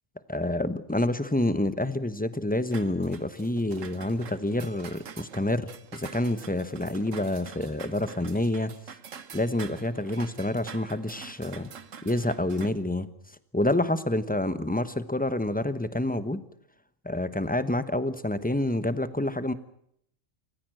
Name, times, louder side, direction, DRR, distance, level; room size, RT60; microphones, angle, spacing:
voice 1, 0.3-8.7 9.3-11.7 12.0-13.1 13.5-16.4 17.0-19.5, left 1 dB, 10° left, 12 dB, 0.9 m, -28 dB
sound 1, 2.7-12.7, right 7 dB, 75° right, 1.6 m, -46 dB
28.0 x 15.0 x 7.7 m, 0.72 s
omnidirectional pair, 1.3 m